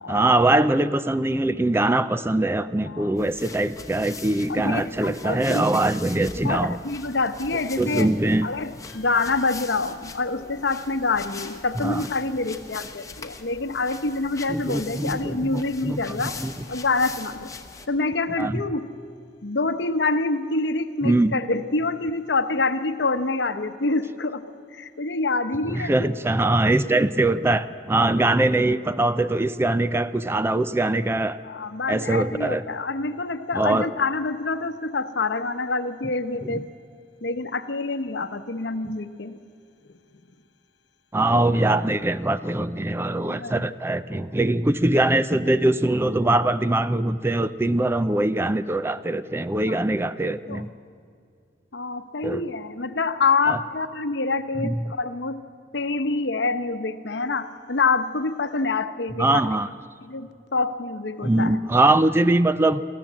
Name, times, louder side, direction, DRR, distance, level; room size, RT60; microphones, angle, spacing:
voice 1, 0.1-6.8 7.8-8.5 11.8-12.1 14.5-16.0 16.4-16.5 18.4-18.6 21.0-21.3 25.7-31.4 31.9-32.6 33.5-33.9 36.5-36.6 41.1-50.7 52.2-52.4 53.5-53.6 54.6-54.7 59.1-59.7 61.2-62.8, right 2 dB, 15° right, 14 dB, 0.4 m, -22 dB
voice 2, 2.9-3.2 4.5-5.7 6.4-8.1 8.4-16.3 16.7-17.5 17.9-18.9 19.4-24.4 24.7-26.1 31.4-36.7 37.2-39.4 43.3-43.7 49.7-49.8 50.5-50.7 51.7-55.4 55.7-59.4 60.0-61.5, left 3 dB, 75° left, 10 dB, 0.9 m, -26 dB
sound 1, 3.2-17.9, left 4 dB, 20° left, 1.0 m, -42 dB
24.0 x 14.5 x 7.5 m, 2.2 s
head